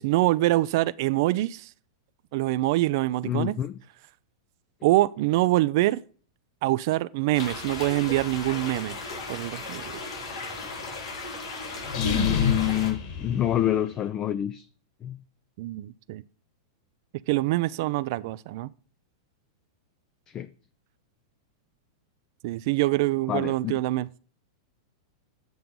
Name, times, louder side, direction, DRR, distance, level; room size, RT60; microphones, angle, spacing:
voice 1, 0.0-1.7 2.3-3.5 4.8-6.0 6.6-9.0 9.3-10.0 15.6-16.2 17.3-18.7 22.4-24.1, right 18 dB, 55° right, 0.3 m, -25 dB
voice 2, 3.2-3.7 11.9-14.7 15.0-15.2 20.3-20.5 23.3-23.8, left 12 dB, 30° left, 0.4 m, -27 dB
sound 1, 7.3-12.9, left 3 dB, 85° left, 4.2 m, -36 dB
sound 2, 11.8-14.0, left 5 dB, 55° left, 3.4 m, -28 dB
7.8 x 6.7 x 5.3 m
hypercardioid pair, 115°, 2 cm